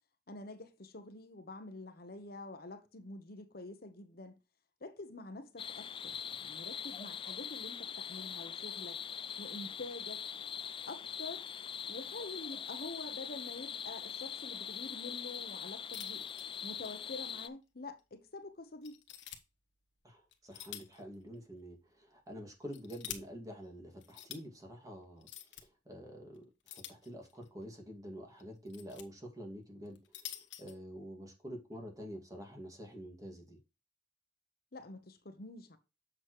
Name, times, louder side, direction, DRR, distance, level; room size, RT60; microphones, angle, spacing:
voice 1, 0.3-4.3 4.8-9.0 9.4-10.2 10.9-11.4 11.9-16.3 16.6-19.0 34.7-35.8, left 2 dB, 55° left, 1.1 m, -47 dB
sound 1, 5.6-17.5, left 8 dB, 30° left, 0.4 m, -42 dB
sound 2, 15.9-17.0 17.3-17.4 18.0-18.1 18.8-19.4 20.3-21.0 21.3-21.4 22.4-23.2 24.0-24.4 25.2-25.6 26.7-27.5 28.4-29.0 29.9-30.7, left 11 dB, 80° left, 1.1 m, -47 dB
voice 2, 20.0-25.3 25.5-30.0 30.6-33.6, equal, 20° right, 2.1 m, -47 dB
7.7 x 6.3 x 3.1 m
head